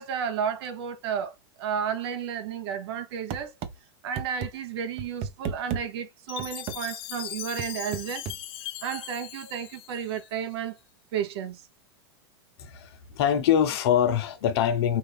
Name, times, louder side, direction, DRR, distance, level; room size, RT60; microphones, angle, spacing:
voice 1, 0.0-1.3 1.6-3.5 4.0-8.3 8.8-10.8 11.1-11.6, right 8 dB, 75° right, 1.1 m, -32 dB
sound 1, 3.3-3.7 4.2-4.5 5.0-5.8 6.4-6.8 7.6-8.4, right 7 dB, 45° right, 0.9 m, -33 dB
Chime, 6.3-10.5, left 14 dB, 40° left, 0.6 m, -39 dB
voice 2, 12.6-15.0, left 9 dB, 75° left, 1.0 m, -24 dB
5.3 x 2.7 x 3.4 m
supercardioid pair, 125°, 14 cm